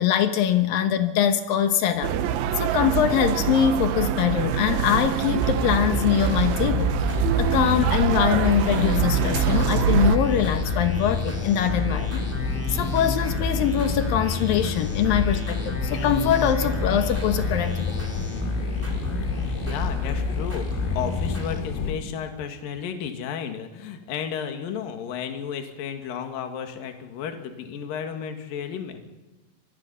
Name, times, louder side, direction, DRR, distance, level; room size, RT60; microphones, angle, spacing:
voice 1, 0.0-2.2 2.6-6.9 7.4-12.3 12.7-18.1, left 9 dB, 70° left, 8 dB, 2.2 m, -23 dB
sound 1, 2.0-10.2, right 10 dB, 80° right, 2.1 m, -25 dB
sound 2, 5.4-22.1, left 1 dB, 5° right, 3.0 m, -29 dB
sound 3, 7.0-21.9, left 7 dB, 85° left, 4.6 m, -32 dB
voice 2, 19.4-29.0, left 7 dB, 55° left, 6 dB, 3.1 m, -33 dB
25.5 x 21.0 x 5.6 m, 1.1 s
omnidirectional pair, 5.6 m